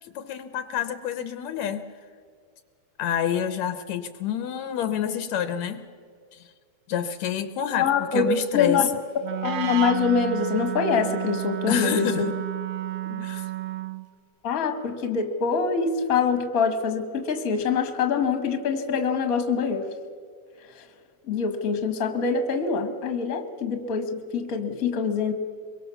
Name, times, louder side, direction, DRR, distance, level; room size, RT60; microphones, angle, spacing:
voice 1, 0.0-1.8 3.0-5.8 6.3-6.5 6.9-8.9 11.7-12.4 13.1-13.5, left 9 dB, 75° left, 10 dB, 2.0 m, -28 dB
voice 2, 7.7-8.2 8.5-8.9 9.4-12.1 14.4-19.8 21.3-25.3, left 5 dB, 35° left, 8 dB, 1.6 m, -24 dB
Wind instrument woodwind instrument, 9.2-14.1, right 13 dB, 65° right, 2.0 m, -31 dB
24.0 x 22.5 x 7.1 m, 2.1 s
omnidirectional pair, 3.4 m